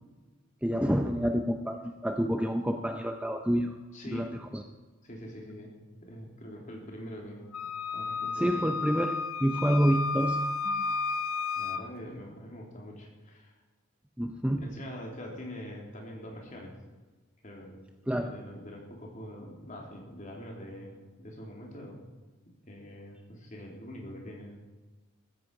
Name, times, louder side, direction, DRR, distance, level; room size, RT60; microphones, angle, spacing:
voice 1, 0.6-3.8 4.1-4.6 8.3-10.8 14.2-14.7 18.1-18.3, equal, 5° right, 5 dB, 0.6 m, -28 dB
voice 2, 3.9-4.4 5.0-5.7 6.0-7.5 7.9-8.7 11.6-13.5 14.5-16.7 17.4-17.8 18.2-22.0 22.6-24.5, equal, 35° left, -1 dB, 3.3 m, -44 dB
Wind instrument woodwind instrument, 7.5-11.9, left 4 dB, 85° left, 0.7 m, -32 dB
14.5 x 14.5 x 4.8 m, 1.3 s
head